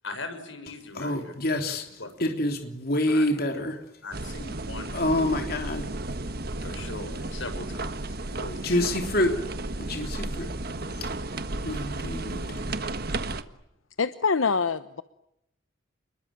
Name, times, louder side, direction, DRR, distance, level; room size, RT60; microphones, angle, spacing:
voice 1, 0.0-1.3 2.0-2.1 3.1-3.4 4.0-5.4 6.6-8.9, left 2 dB, 75° left, 8 dB, 6.8 m, -40 dB
voice 2, 0.9-3.8 4.9-5.9 8.6-9.4 9.8-10.5 11.0-11.1 11.6-12.6, left 1 dB, 50° left, 4 dB, 3.4 m, -27 dB
sound 1, 4.1-13.4, right 2 dB, 50° right, 1.5 m, -33 dB
voice 3, 14.0-15.0, left 5 dB, 90° left, 12 dB, 1.0 m, -25 dB
29.5 x 22.0 x 8.9 m, 0.83 s
head